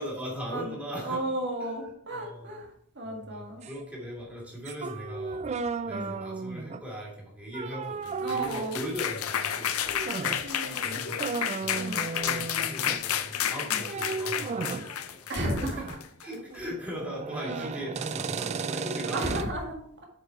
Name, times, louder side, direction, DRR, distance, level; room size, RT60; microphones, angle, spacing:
voice 1, 0.0-1.2 1.6-1.7 2.1-2.5 3.0-5.5 5.8-10.3 10.8-11.2 11.6-15.3 15.7-15.8 16.2-19.4, equal, 5° right, -3 dB, 2.6 m, -39 dB
voice 2, 1.0-3.6 5.9-6.1 8.2-8.8 10.2-11.0 11.7-12.0 13.7-13.8 15.3-16.3 17.4-17.7 19.0-19.8, right 1 dB, 55° right, 1 dB, 1.8 m, -34 dB
sound 1, 3.6-3.8 4.7-6.9 7.5-8.9 9.9-10.5 10.8-10.9 11.2-13.1 13.8-14.9 15.5-16.0 16.3-19.4, right 4 dB, 30° right, 0.3 m, -34 dB
sound 2, 8.1-16.3, left 9 dB, 75° left, 0.6 m, -31 dB
7.7 x 5.4 x 4.6 m, 0.68 s
head